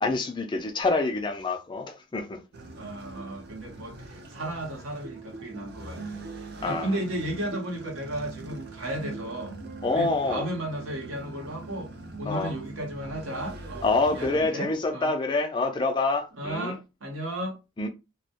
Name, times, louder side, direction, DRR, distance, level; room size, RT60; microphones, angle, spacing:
voice 1, 0.0-2.4 6.6-6.9 9.8-10.5 12.3-12.5 13.8-16.7 17.8-17.9, left 3 dB, 20° left, 0.3 m, -26 dB
sound 1, 2.5-14.5, right 3 dB, 50° right, 0.4 m, -42 dB
voice 2, 2.7-15.1 16.3-17.6, right 1 dB, 80° right, 0.8 m, -34 dB
2.2 x 2.0 x 2.7 m
head